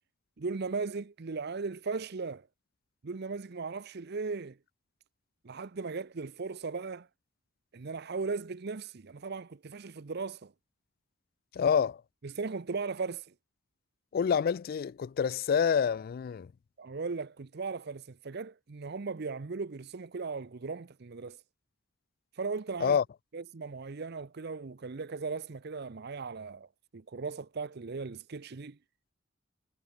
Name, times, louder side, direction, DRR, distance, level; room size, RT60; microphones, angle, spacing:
voice 1, 0.4-2.5 3.0-4.6 5.4-7.1 7.7-10.5 12.2-13.3 16.8-21.4 22.3-23.0 23.3-28.8, right 4 dB, 55° right, 0.7 m, -37 dB
voice 2, 11.5-12.0 14.1-16.5 22.8-23.0, left 7 dB, 50° left, 0.3 m, -27 dB
head